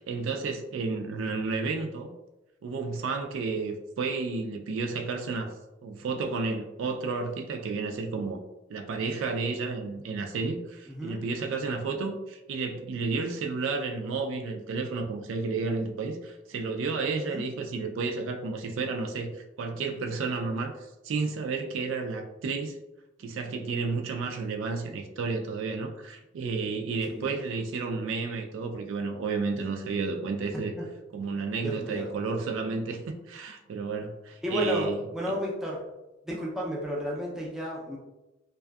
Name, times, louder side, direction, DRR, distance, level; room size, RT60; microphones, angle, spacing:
voice 1, 0.0-2.1 2.6-5.5 5.8-8.4 8.7-19.3 19.6-20.7 21.0-22.8 23.2-30.7 31.1-35.3, right 4 dB, 75° right, 4 dB, 0.3 m, -31 dB
voice 2, 10.9-11.2 17.1-17.4 27.1-27.3 30.7-30.9 31.6-32.1 34.4-35.8 36.3-38.0, equal, 5° right, -4 dB, 0.4 m, -32 dB
2.5 x 2.3 x 2.2 m, 0.97 s
head